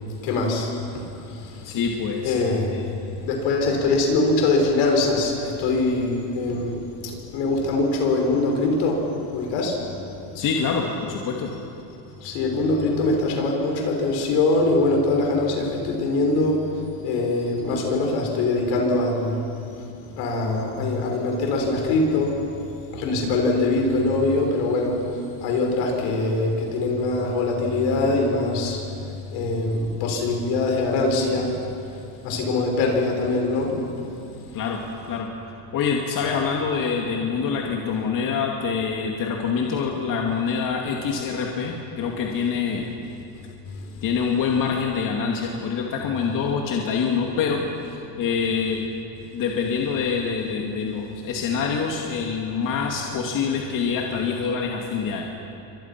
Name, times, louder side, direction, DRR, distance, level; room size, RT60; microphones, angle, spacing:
voice 1, 0.2-0.7 1.4-1.5 2.2-2.7 3.2-6.8 7.0-9.0 9.3-9.8 12.2-16.6 17.0-19.4 20.2-22.4 22.9-25.0 25.4-28.8 29.3-31.5 32.2-33.7, left 2 dB, 75° left, 1 dB, 6.3 m, -22 dB
voice 2, 1.6-2.3 2.7-2.8 10.3-11.5 34.5-34.8 35.1-42.9 44.0-48.8 49.3-55.2, left 6 dB, 45° left, 0 dB, 2.5 m, -25 dB
28.5 x 25.0 x 6.0 m, 2.9 s
cardioid pair, 140°, 45 cm